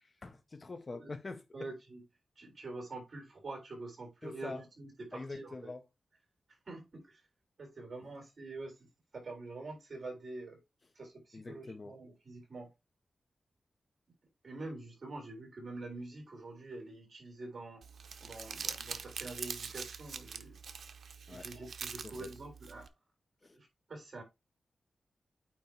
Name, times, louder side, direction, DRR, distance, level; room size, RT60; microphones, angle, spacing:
voice 1, 0.0-1.7 4.2-4.6 5.1-5.9 11.3-12.0 21.3-21.5 22.0-22.3 23.4-23.6, left 3 dB, 30° left, 0.7 m, -45 dB
voice 2, 1.5-2.0 2.4-5.7 6.7-7.2 7.6-8.9 9.1-10.6 11.0-12.7 14.4-17.8 18.2-20.6 21.3-22.9 23.5-24.2, right 2 dB, 40° right, 3.7 m, -46 dB
Crumpling crinkling, 17.8-22.9, right 6 dB, 70° right, 0.7 m, -44 dB
9.0 x 3.1 x 4.5 m
wide cardioid pair, 175°, 0 cm